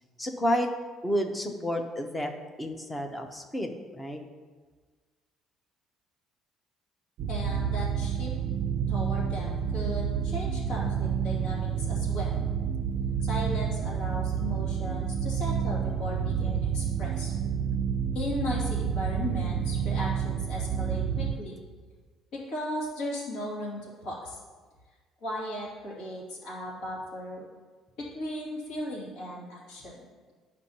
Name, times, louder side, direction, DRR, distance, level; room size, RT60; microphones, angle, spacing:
voice 1, 0.2-0.7 1.0-2.3 2.6-4.2, equal, 10° left, 5 dB, 0.6 m, -30 dB
sound 1, 7.2-21.3, right 7 dB, 50° right, 0.3 m, -29 dB
voice 2, 7.3-8.3 8.9-12.4 13.2-17.3 18.1-21.6 22.3-24.4 25.2-27.4 28.0-29.9, left 1 dB, 75° left, -5 dB, 2.4 m, -36 dB
11.5 x 5.2 x 2.8 m, 1.4 s
cardioid pair, 170°, 0 cm